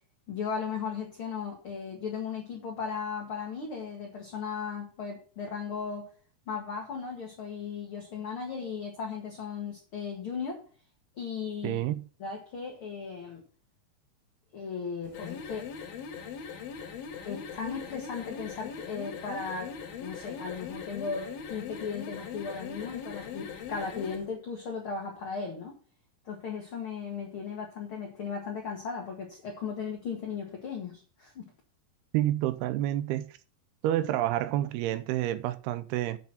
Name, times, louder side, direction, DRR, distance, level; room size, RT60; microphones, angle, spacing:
voice 1, 0.3-6.1 6.5-10.6 11.2-11.8 12.2-13.4 14.5-15.7 17.3-19.7 20.0-25.8 26.3-31.4, left 5 dB, 45° left, 2.1 m, -36 dB
voice 2, 11.6-12.0 32.1-33.3 33.8-36.2, right 13 dB, 85° right, 2.6 m, -29 dB
sound 1, 15.0-24.3, left 6 dB, 75° left, 3.2 m, -41 dB
8.4 x 7.1 x 5.8 m
omnidirectional pair, 4.5 m